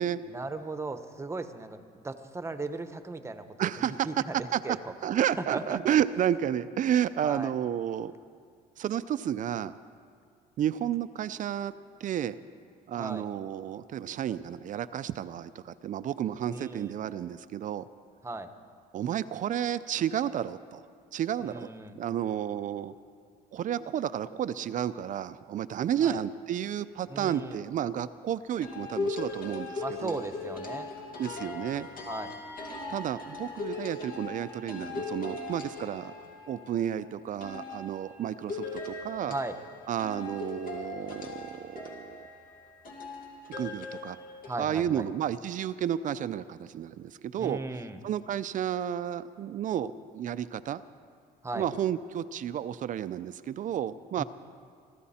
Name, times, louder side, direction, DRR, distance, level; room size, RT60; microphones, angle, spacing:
voice 1, 0.3-3.7 4.0-4.8 5.4-6.0 7.2-7.5 13.0-13.2 16.5-16.9 18.2-18.5 21.4-21.9 26.0-26.2 27.1-27.6 29.8-30.9 32.0-32.3 39.3-39.6 44.5-45.1 47.4-48.0 51.4-51.7 54.2-54.3, right 3 dB, 15° right, 9 dB, 1.0 m, -37 dB
voice 2, 3.6-4.1 4.5-4.8 5.0-8.1 8.8-9.8 10.6-11.7 12.0-12.4 12.9-17.9 18.9-20.9 21.1-21.7 21.9-22.9 23.5-30.2 31.2-31.9 32.9-36.1 36.5-39.3 39.9-42.2 43.6-44.2 44.6-47.6 48.0-50.8 51.5-54.2, right 10 dB, 50° right, 14 dB, 0.5 m, -31 dB
sound 1, 28.6-36.8 37.4-44.6, left 3 dB, 55° left, 2.3 m, -39 dB
24.0 x 13.5 x 4.3 m, 2.2 s
cardioid pair, 110°, 17 cm